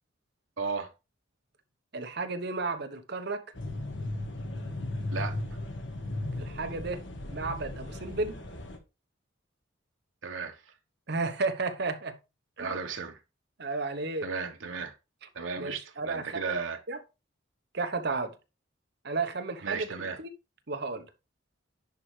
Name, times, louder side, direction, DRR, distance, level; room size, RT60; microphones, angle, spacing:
voice 1, 0.6-0.9 5.1-5.4 10.2-10.7 12.6-13.2 14.2-14.9 15.3-16.8 19.6-20.2, right 5 dB, 85° right, 1.0 m, -35 dB
voice 2, 1.9-3.4 6.3-7.0 7.3-8.4 11.1-12.2 12.6-12.7 13.6-14.3 15.6-16.4 16.9-17.0 17.7-18.3 19.0-19.9 20.2-20.3 20.7-21.0, right 3 dB, 55° right, 1.0 m, -32 dB
sound 1, 3.6-8.8, left 1 dB, 65° left, 1.6 m, -36 dB
10.5 x 4.6 x 3.2 m
head